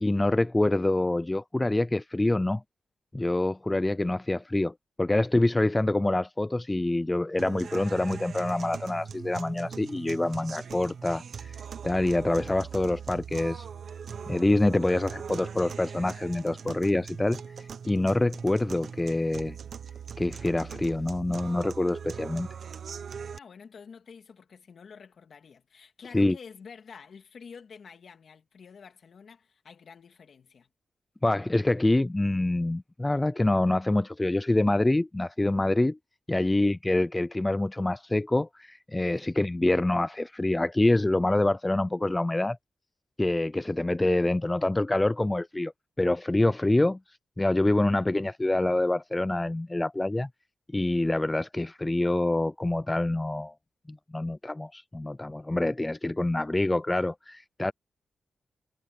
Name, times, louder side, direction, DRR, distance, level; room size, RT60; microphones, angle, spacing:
voice 1, 0.0-2.6 3.1-13.7 14.3-17.4 17.9-19.6 20.2-22.5 26.1-26.4 31.2-36.0 36.3-42.6 43.2-45.7 46.0-47.0 47.4-50.3 50.7-53.5 53.9-57.7, left 2 dB, 15° left, 0.4 m, -26 dB
sound 1, 7.4-23.4, right 7 dB, 60° right, 1.1 m, -41 dB
voice 2, 23.3-30.7 36.3-36.7 39.1-39.3, left 6 dB, 55° left, 2.7 m, -49 dB
wide cardioid pair, 140°, 0 cm